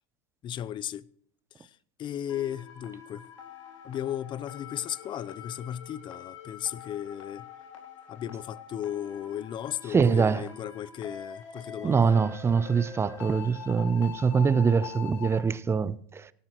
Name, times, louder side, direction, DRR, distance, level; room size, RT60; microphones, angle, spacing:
voice 1, 0.4-1.1 1.6-3.3 3.8-7.5 8.1-12.2, left 10 dB, 30° left, 0.5 m, -35 dB
sound 1, 2.3-15.4, left 7 dB, 85° left, 4.0 m, -44 dB
voice 2, 9.9-10.4 11.8-16.3, right 5 dB, 15° right, 0.6 m, -24 dB
17.5 x 12.5 x 3.0 m
hypercardioid pair, 110°, 16 cm